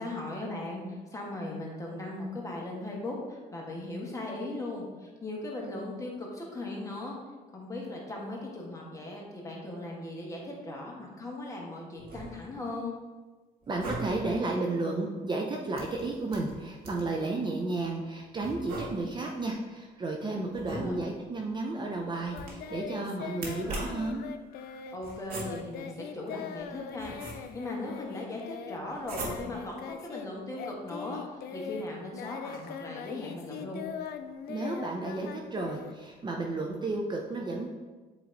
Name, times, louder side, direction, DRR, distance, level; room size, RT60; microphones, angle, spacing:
voice 1, 0.0-7.2 7.5-12.9 20.6-21.0 24.9-33.8, left 2 dB, 20° left, -2 dB, 1.5 m, -38 dB
sound 1, 12.0-12.7 13.6-14.4 15.7-17.2 18.4-19.3 20.5-21.3 22.3-22.8 23.3-24.1 25.0-25.8 26.6-27.7 29.0-29.7, right 2 dB, 65° right, 1.6 m, -41 dB
voice 2, 13.7-24.2 34.5-37.7, right 2 dB, 25° right, 1 dB, 0.6 m, -32 dB
Singing, 22.3-30.3 30.5-36.4, left 8 dB, 65° left, 0.5 m, -41 dB
7.8 x 3.1 x 3.9 m, 1.3 s
cardioid pair, 110°, 17 cm